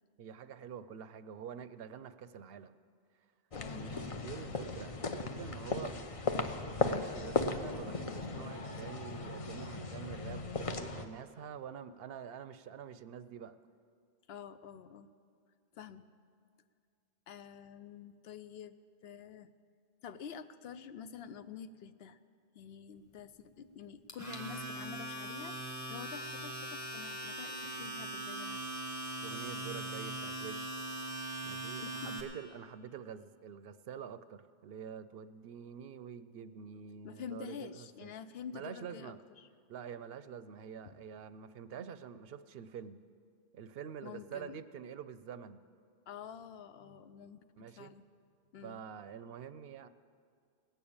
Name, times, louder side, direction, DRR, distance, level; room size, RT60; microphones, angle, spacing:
voice 1, 0.2-2.7 3.7-6.0 6.8-13.6 29.2-30.7 31.4-38.1 38.5-39.2 39.7-43.0 43.5-45.6 47.6-47.9 48.6-49.9, right 7 dB, 70° right, 13 dB, 0.8 m, -47 dB
voice 2, 3.5-4.3 14.3-15.1 15.7-16.1 17.3-18.8 19.0-19.5 20.0-22.2 22.5-25.6 25.9-28.6 31.7-32.1 37.0-39.5 40.8-41.0 44.0-44.6 46.1-48.0 48.5-48.8, left 7 dB, 75° left, 12 dB, 0.8 m, -48 dB
sound 1, 3.5-11.0, left 3 dB, 40° left, 0.7 m, -37 dB
Domestic sounds home sounds, 24.1-32.2, right 1 dB, 15° left, 1.5 m, -41 dB
18.5 x 6.9 x 8.6 m, 2.3 s
omnidirectional pair, 1.0 m